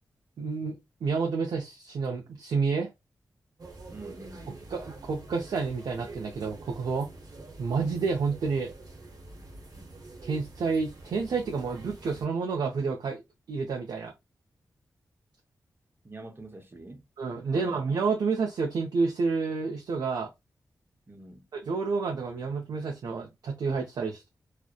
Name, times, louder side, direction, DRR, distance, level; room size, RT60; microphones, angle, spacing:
voice 1, 0.4-0.7 1.0-2.9 4.7-7.1 7.6-8.7 10.2-13.2 13.5-14.1 17.2-20.3 21.5-24.3, right 4 dB, 80° right, 0.5 m, -29 dB
sound 1, 3.6-12.3, right 2 dB, 60° right, 0.9 m, -46 dB
voice 2, 3.9-4.5 16.0-17.0 17.5-17.8 21.1-21.5, right 2 dB, 35° right, 0.7 m, -46 dB
2.8 x 2.0 x 2.2 m
cardioid pair, 45°, 7 cm